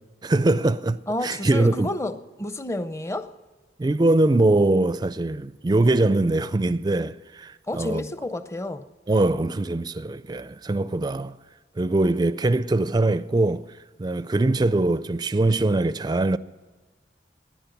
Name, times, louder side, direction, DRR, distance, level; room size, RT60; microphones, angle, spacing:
voice 1, 0.2-1.0 1.2-1.9 3.8-8.1 9.1-11.4 11.8-13.7 14.0-16.4, right 2 dB, 25° right, 0.4 m, -22 dB
voice 2, 1.1-3.3 7.7-8.9, left 1 dB, 15° left, 0.7 m, -30 dB
17.5 x 11.0 x 5.9 m
head